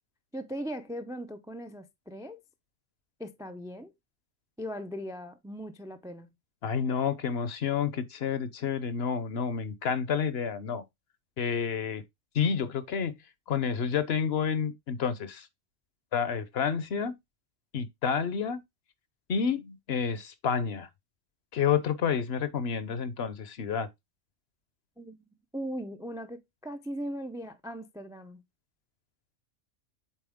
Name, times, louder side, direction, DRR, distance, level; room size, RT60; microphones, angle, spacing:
voice 1, 0.3-2.4 3.2-3.9 4.6-6.3 25.0-25.2 25.5-28.4, equal, 5° right, 0.3 m, -39 dB
voice 2, 6.6-10.8 11.4-12.0 12.3-13.2 13.5-15.5 16.1-17.2 17.7-18.6 19.3-20.9 21.5-23.9, left 7 dB, 60° left, 0.9 m, -29 dB
7.6 x 4.1 x 3.5 m
omnidirectional pair, 1.3 m